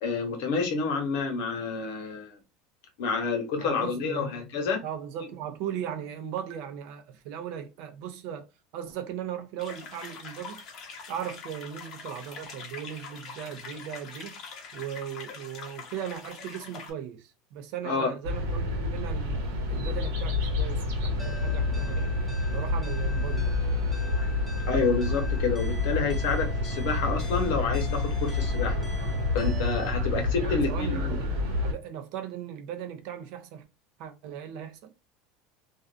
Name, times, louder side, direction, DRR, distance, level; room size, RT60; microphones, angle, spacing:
voice 1, 0.0-2.3 3.0-4.8 17.8-18.1 24.7-28.8 29.3-31.2, left 4 dB, 70° left, 0.9 m, -29 dB
voice 2, 3.6-4.3 4.8-8.5 8.7-10.6 11.1-14.4 14.7-19.4 19.7-22.1 22.5-23.6 30.4-31.3 31.6-33.6 34.0-34.9, right 9 dB, 60° right, 0.5 m, -38 dB
sound 1, 9.6-16.9, left 5 dB, 40° left, 0.7 m, -43 dB
sound 2, 18.2-31.7, left 2 dB, 90° right, 1.0 m, -28 dB
sound 3, 21.2-29.9, left 2 dB, ahead, 0.6 m, -45 dB
2.4 x 2.3 x 2.4 m
supercardioid pair, 155°, 0 cm